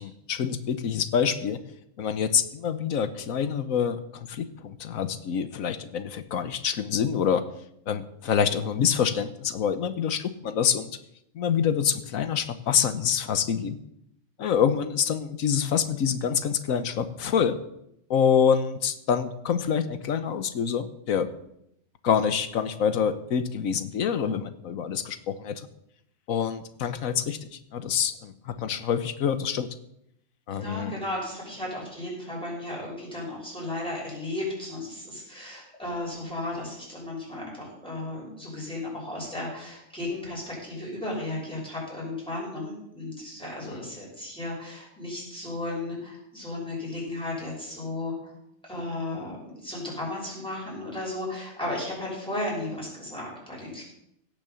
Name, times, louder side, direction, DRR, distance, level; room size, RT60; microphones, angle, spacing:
voice 1, 0.0-1.6 2.0-4.0 4.3-7.4 7.9-10.9 11.3-13.8 14.4-17.6 18.1-21.3 22.0-25.7 26.3-29.7 30.5-30.9 43.6-43.8, left 7 dB, 90° left, 11 dB, 1.4 m, -26 dB
voice 2, 30.5-48.3 48.6-53.8, left 2 dB, 5° left, -4 dB, 6.3 m, -34 dB
17.0 x 6.8 x 6.9 m, 0.78 s
omnidirectional pair, 1.4 m